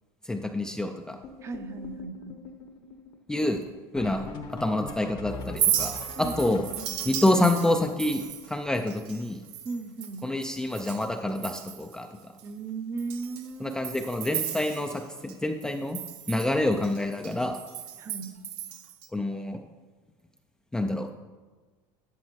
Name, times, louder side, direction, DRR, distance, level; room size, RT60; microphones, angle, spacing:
voice 1, 0.3-1.2 3.3-3.6 3.9-4.2 4.5-6.7 7.1-9.4 10.2-12.3 13.6-16.0 16.3-17.6 19.1-19.6 20.7-21.1, left 1 dB, 5° left, 4 dB, 0.4 m, -27 dB
sound 1, 1.2-9.4 9.7-9.8 10.0-10.3 10.6-11.1 11.4-11.6 12.5-12.6 13.0-13.1 13.4-13.5 15.8-15.9 18.2-18.3, left 4 dB, 50° left, 1.0 m, -43 dB
voice 2, 1.4-2.4 6.2-7.0 9.6-10.3 12.4-13.8 18.0-18.4, right 4 dB, 25° right, 8 dB, 0.7 m, -37 dB
Chink clink, 5.4-11.1 11.4-12.0 12.4-12.5 13.0-15.3 15.6-19.1, right 11 dB, 70° right, 0.7 m, -34 dB
11.5 x 6.5 x 3.1 m, 1.3 s
supercardioid pair, 130°, 10 cm